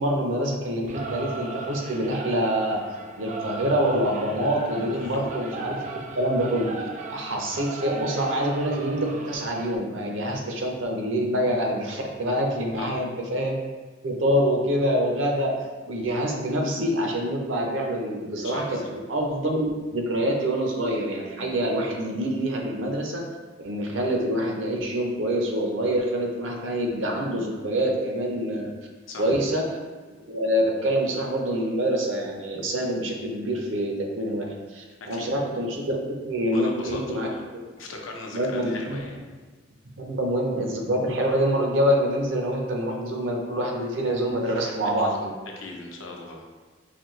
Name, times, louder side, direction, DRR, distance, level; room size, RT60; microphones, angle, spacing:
voice 1, 0.0-2.8 3.2-5.8 6.2-6.7 7.1-13.6 14.0-15.5 15.9-18.8 19.1-19.6 19.9-23.2 23.6-28.6 29.2-29.6 30.3-34.4 34.7-36.0 36.2-37.3 37.5-37.6 38.3-39.0 40.0-45.2, equal, 75° right, 0 dB, 0.7 m, -26 dB
Singing / Musical instrument, 0.9-9.8, right 4 dB, 40° right, 0.3 m, -36 dB
voice 2, 18.4-18.9 29.1-29.2 35.0-35.3 36.5-37.4 37.8-39.2 44.8-45.1 45.6-46.5, left 2 dB, 80° left, 0 dB, 0.7 m, -38 dB
4.0 x 2.7 x 3.1 m, 1.3 s
head